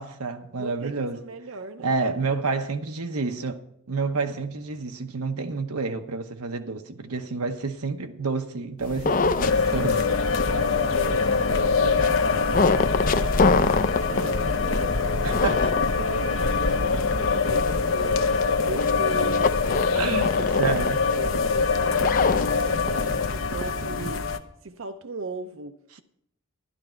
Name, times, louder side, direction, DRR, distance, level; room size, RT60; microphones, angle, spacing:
voice 1, 0.0-1.2 1.8-3.6 3.9-10.2 15.2-15.8 19.9-20.3 20.6-21.0, right 4 dB, 90° right, 1.0 m, -29 dB
voice 2, 0.6-1.9 10.4-15.4 15.9-20.5 21.2-24.2 24.6-26.0, right 3 dB, 65° right, 0.6 m, -38 dB
sound 1, 8.8-24.1, left 4 dB, 40° left, 0.4 m, -28 dB
sound 2, 9.4-24.4, left 4 dB, 60° left, 0.8 m, -24 dB
11.5 x 11.5 x 4.5 m
head